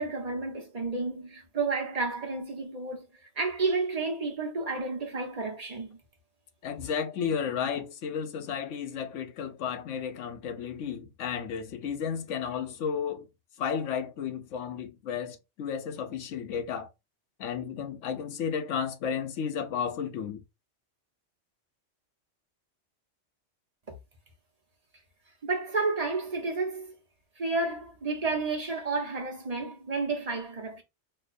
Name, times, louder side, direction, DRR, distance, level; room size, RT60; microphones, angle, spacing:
voice 1, 0.0-3.1 3.4-6.0 25.4-26.9 27.4-30.8, right 3 dB, 35° right, 1.1 m, -31 dB
voice 2, 6.6-13.3 13.6-16.9 17.4-20.4, left 7 dB, 85° left, 1.0 m, -33 dB
4.4 x 2.7 x 2.5 m
omnidirectional pair, 1.2 m